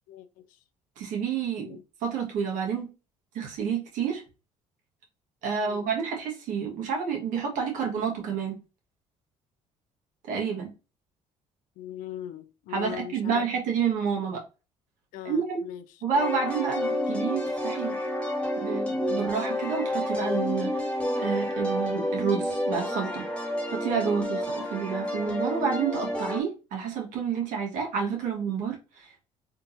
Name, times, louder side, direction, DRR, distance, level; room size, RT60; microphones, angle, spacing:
voice 1, 0.1-0.6 1.6-1.8 5.6-5.9 11.8-13.4 15.1-15.8, left 11 dB, 85° left, 0.4 m, -40 dB
voice 2, 1.0-2.9 3.3-4.2 5.4-8.6 10.3-10.7 12.7-14.4 15.2-15.6 16.0-17.9 18.6-20.9 21.2-23.3 23.7-29.2, right 6 dB, 75° right, 1.2 m, -29 dB
sound 1, 16.1-26.4, left 1 dB, 10° left, 1.0 m, -29 dB
3.6 x 2.8 x 2.5 m
cardioid pair, 105°, 13 cm